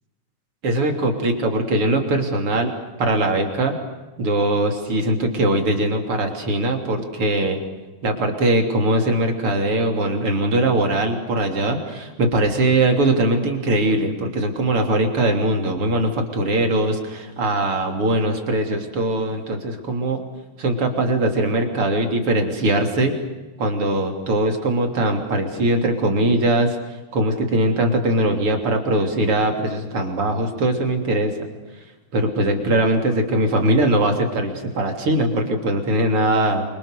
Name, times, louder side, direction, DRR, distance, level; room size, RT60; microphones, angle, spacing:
voice 1, 0.6-2.7 3.0-3.8 4.2-7.6 8.0-20.2 20.6-23.1 23.6-26.8 27.1-31.3 32.1-36.7, right 1 dB, 45° right, 3 dB, 4.0 m, -21 dB
28.0 x 25.5 x 6.7 m, 1.2 s
omnidirectional pair, 3.6 m